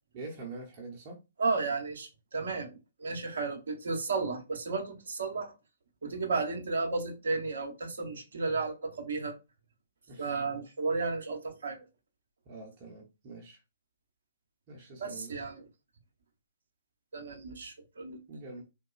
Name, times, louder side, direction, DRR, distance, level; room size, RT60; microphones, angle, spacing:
voice 1, 0.1-1.2 10.1-10.4 12.5-13.6 14.7-15.4 18.3-18.6, right 3 dB, 35° right, 0.9 m, -45 dB
voice 2, 1.4-5.5 6.0-9.4 10.2-11.9 15.0-15.6 17.1-18.2, right 4 dB, 65° right, 0.9 m, -33 dB
3.9 x 2.2 x 2.4 m
figure-of-eight pair, 125°, 0 cm